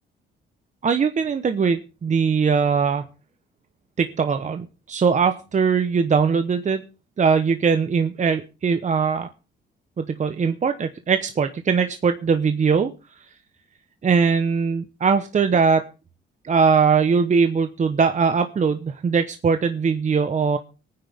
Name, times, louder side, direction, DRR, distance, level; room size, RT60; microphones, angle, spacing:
voice 1, 0.8-3.1 4.0-6.8 7.2-9.3 10.0-12.9 14.0-15.9 16.4-20.6, right 5 dB, 40° right, 9 dB, 1.0 m, -21 dB
23.5 x 9.7 x 3.5 m, 0.32 s
cardioid pair, 90°, 20 cm